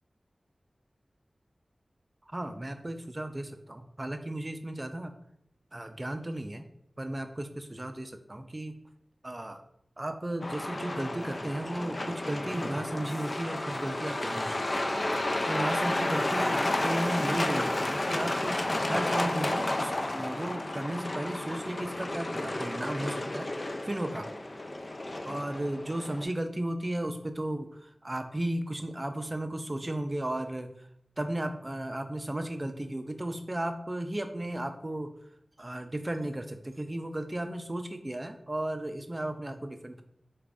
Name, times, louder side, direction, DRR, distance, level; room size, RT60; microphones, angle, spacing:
voice 1, 2.2-5.1 5.7-6.7 7.0-8.8 9.2-9.6 10.0-15.0 15.5-18.6 18.9-23.5 23.8-24.3 25.2-30.9 31.2-35.1 35.6-40.0, right 1 dB, 30° right, 7 dB, 0.4 m, -35 dB
Truck, 10.4-26.2, left 1 dB, 45° left, 0.3 m, -32 dB
4.0 x 2.4 x 3.4 m, 0.73 s
wide cardioid pair, 70°, 0 cm